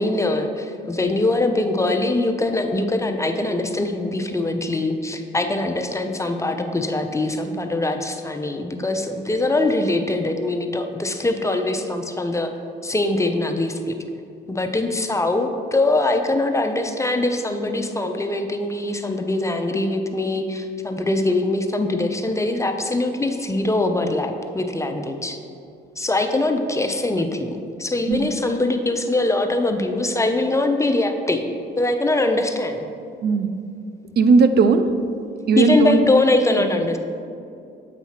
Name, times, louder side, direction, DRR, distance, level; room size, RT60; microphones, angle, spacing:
voice 1, 0.0-12.5 12.8-13.9 14.5-25.4 26.0-31.5 31.8-32.8 35.6-37.0, left 2 dB, 15° left, 5 dB, 0.5 m, -22 dB
voice 2, 34.2-34.9 35.5-36.0, right 4 dB, 55° right, 10 dB, 0.4 m, -16 dB
8.0 x 3.0 x 5.6 m, 2.4 s
cardioid pair, 90°, 20 cm